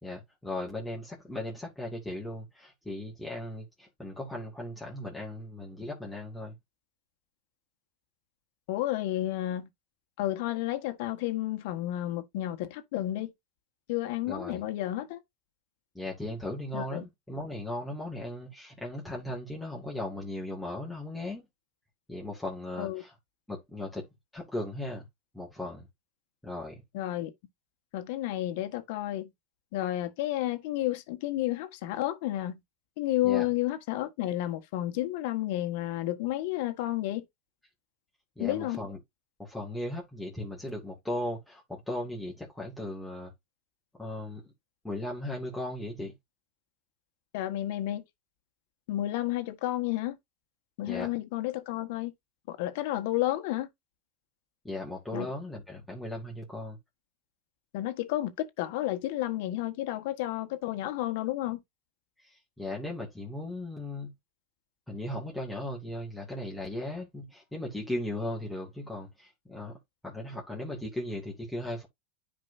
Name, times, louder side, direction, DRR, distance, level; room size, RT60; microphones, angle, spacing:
voice 1, 0.0-6.5 14.3-14.7 15.9-21.5 22.1-23.1 23.5-24.0 24.3-25.0 25.3-25.9 26.4-26.8 33.2-33.5 38.4-39.0 39.4-43.3 43.9-44.5 44.8-46.1 50.9-51.1 54.6-56.8 62.2-64.1 64.9-69.8 70.0-71.9, left 1 dB, 5° left, 2.4 m, -37 dB
voice 2, 8.7-9.7 10.2-13.3 13.9-15.2 16.7-17.1 22.8-23.0 26.9-27.3 27.9-29.3 29.7-32.6 33.0-37.2 38.4-38.8 47.3-48.0 48.9-50.2 50.8-52.1 52.5-53.7 55.1-55.3 57.7-61.6, left 14 dB, 60° left, 1.5 m, -31 dB
10.0 x 5.1 x 2.7 m
supercardioid pair, 135°, 0 cm